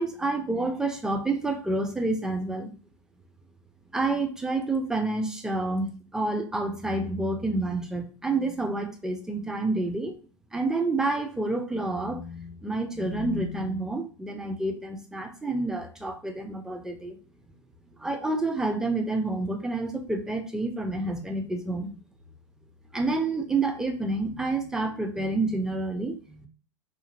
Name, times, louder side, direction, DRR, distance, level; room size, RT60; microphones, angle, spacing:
voice 1, 0.0-2.7 3.9-10.2 10.5-17.2 18.0-21.9 22.9-26.5, right 2 dB, 5° right, 4 dB, 0.4 m, -29 dB
2.5 x 2.5 x 2.7 m, 0.37 s
figure-of-eight pair, 95°, 16 cm